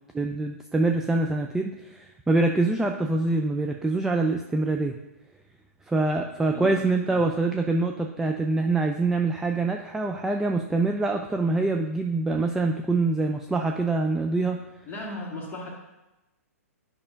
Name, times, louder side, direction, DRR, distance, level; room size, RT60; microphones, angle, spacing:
voice 1, 0.1-5.0 5.9-14.6, right 2 dB, 5° right, 3 dB, 0.3 m, -25 dB
voice 2, 14.9-15.7, left 2 dB, 20° left, -2 dB, 1.8 m, -36 dB
10.5 x 5.5 x 2.5 m, 1.0 s
figure-of-eight pair, 115°, 8 cm